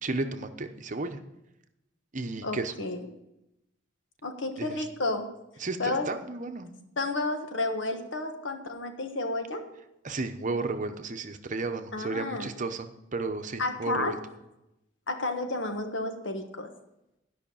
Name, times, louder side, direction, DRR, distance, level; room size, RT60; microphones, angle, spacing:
voice 1, 0.0-1.2 2.1-2.7 4.6-4.8 5.6-6.7 10.0-14.2, right 3 dB, 40° right, 8 dB, 0.8 m, -33 dB
voice 2, 2.4-3.0 4.2-5.3 5.8-6.1 7.0-9.6 11.9-12.5 13.6-14.1 15.1-16.7, left 2 dB, 70° left, 5 dB, 1.4 m, -31 dB
12.5 x 5.7 x 7.1 m, 0.89 s
head